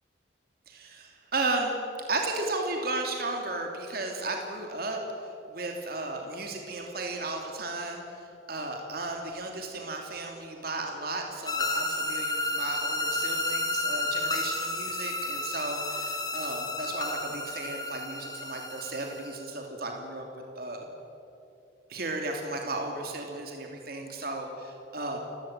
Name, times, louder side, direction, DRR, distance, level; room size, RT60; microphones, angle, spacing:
voice 1, 0.7-1.7 2.1-20.2 20.6-20.9 21.9-25.2, right 2 dB, 50° right, 2 dB, 2.9 m, -34 dB
sound 1, 11.5-19.4, left 2 dB, 20° left, 2.2 m, -31 dB
30.0 x 16.5 x 8.8 m, 2.8 s
head